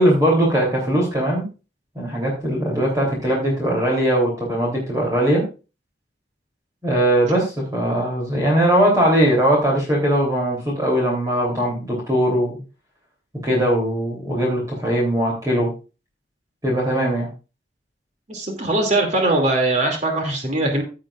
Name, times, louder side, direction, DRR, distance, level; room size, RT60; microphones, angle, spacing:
voice 1, 0.0-1.5 1.9-5.4 6.8-12.6 13.4-15.7 16.6-17.3, right 1 dB, 20° right, -2 dB, 3.3 m, -20 dB
voice 2, 18.3-20.8, right 2 dB, 40° right, 3 dB, 2.6 m, -21 dB
15.5 x 7.6 x 2.5 m, 0.32 s
head